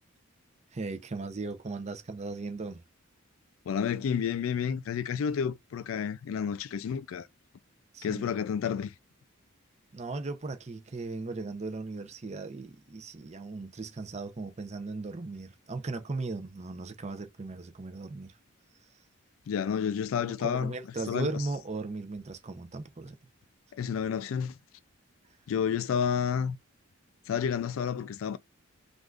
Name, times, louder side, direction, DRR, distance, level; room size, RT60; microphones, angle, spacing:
voice 1, 0.7-2.8 7.9-8.4 9.9-18.4 20.4-23.2, right 3 dB, 30° right, 0.5 m, -37 dB
voice 2, 3.7-7.3 8.0-8.9 19.5-20.8 21.1-21.4 23.7-24.6 25.5-26.6 27.3-28.4, left 7 dB, 70° left, 0.3 m, -30 dB
3.4 x 2.5 x 2.3 m
head